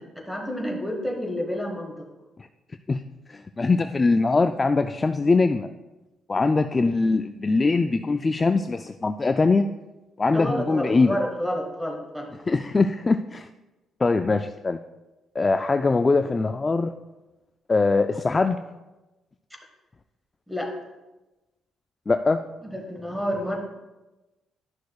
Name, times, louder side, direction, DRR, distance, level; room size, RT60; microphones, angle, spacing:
voice 1, 0.3-2.1 10.3-12.3 20.5-20.7 22.6-23.6, equal, ahead, 1 dB, 1.4 m, -29 dB
voice 2, 3.3-5.7 6.3-9.7 10.2-11.2 12.5-13.5 14.0-14.8 15.4-16.9 17.7-18.6 22.1-22.4, left 3 dB, 30° left, 8 dB, 0.3 m, -22 dB
11.5 x 6.3 x 2.3 m, 1.1 s
cardioid pair, 90°, 0 cm